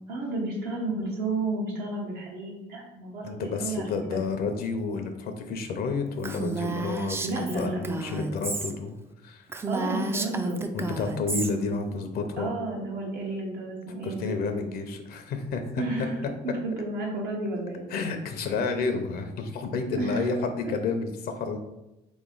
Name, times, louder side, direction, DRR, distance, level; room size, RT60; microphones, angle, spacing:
voice 1, 0.1-4.2 7.2-8.0 9.7-10.6 12.4-14.4 15.8-17.8 19.9-20.3 20.6-20.7, right 2 dB, 75° right, -3 dB, 1.1 m, -32 dB
voice 2, 3.2-9.0 9.2-9.4 10.7-12.5 14.0-15.8 17.9-21.6, left 4 dB, 65° left, 6 dB, 0.6 m, -30 dB
Female speech woman speaking, 6.2-8.7 9.1-9.2 9.5-11.5, right 3 dB, 15° right, 0.3 m, -32 dB
3.6 x 3.0 x 3.8 m, 0.95 s
cardioid pair, 110°, 17 cm